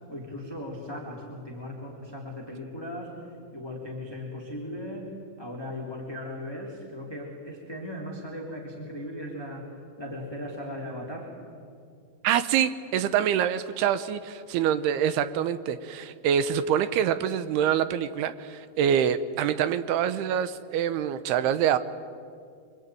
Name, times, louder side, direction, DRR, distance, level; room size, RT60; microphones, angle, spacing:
voice 1, 0.1-11.3, left 1 dB, 5° left, -2 dB, 2.9 m, -38 dB
voice 2, 12.2-21.8, right 9 dB, 85° right, 12 dB, 2.9 m, -25 dB
25.0 x 25.0 x 9.3 m, 2.3 s
omnidirectional pair, 4.5 m